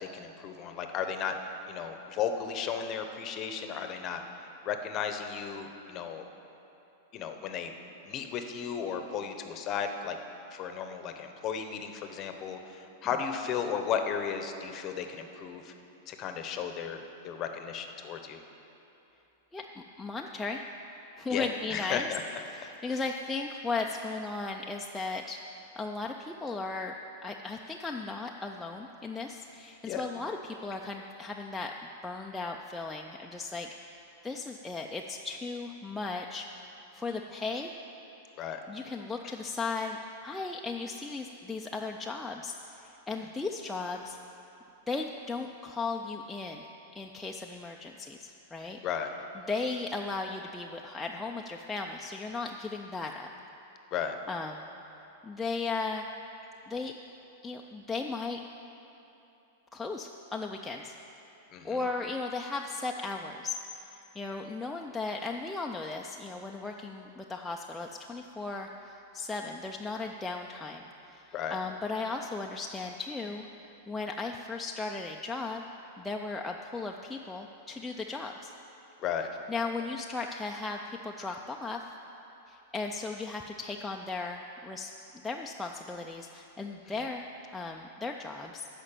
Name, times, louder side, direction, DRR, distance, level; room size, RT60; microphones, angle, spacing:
voice 1, 0.0-1.4 1.7-4.2 4.6-6.3 7.1-7.7 8.0-10.2 10.5-15.7 16.1-18.4 21.3-22.2 22.9-23.0 29.8-30.1 38.4-38.6 48.8-49.1 53.9-54.2 61.5-61.9 71.3-71.6 79.0-79.3, left 7 dB, 25° left, 6 dB, 0.7 m, -34 dB
voice 2, 19.5-20.6 21.2-22.1 22.5-26.9 27.2-31.7 32.0-37.7 38.7-44.2 44.9-46.6 46.9-48.8 49.5-53.3 54.3-54.7 55.2-56.1 56.7-56.9 57.4-58.4 59.7-60.9 61.6-63.8 64.1-75.6 76.0-78.5 79.5-81.8 82.5-84.9 85.2-88.7, left 3 dB, 5° left, 0 dB, 0.3 m, -36 dB
13.5 x 5.1 x 8.9 m, 3.0 s
supercardioid pair, 170°, 0 cm